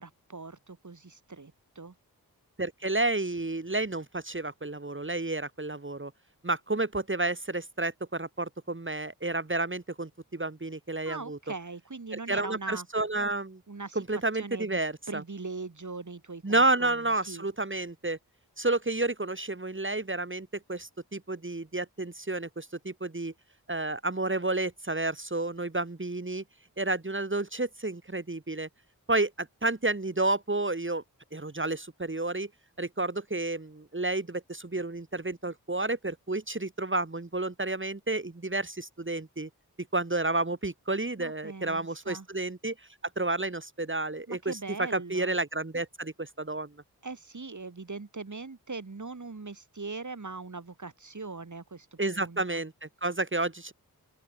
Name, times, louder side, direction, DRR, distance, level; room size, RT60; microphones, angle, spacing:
voice 1, 0.0-1.9 11.0-12.9 13.7-14.0 14.4-14.8 15.1-17.0 17.3-17.5 41.2-42.3 44.3-45.3 47.0-52.6, right 3 dB, 50° right, 4.5 m, -41 dB
voice 2, 2.6-6.1 6.4-11.4 12.1-13.6 13.9-15.2 16.4-18.2 18.6-23.3 23.7-26.4 26.8-28.7 29.1-31.0 31.3-32.5 32.8-39.5 39.9-42.7 43.2-46.7 52.0-53.7, right 2 dB, 30° right, 3.1 m, -31 dB
open air
cardioid pair, 45°, 37 cm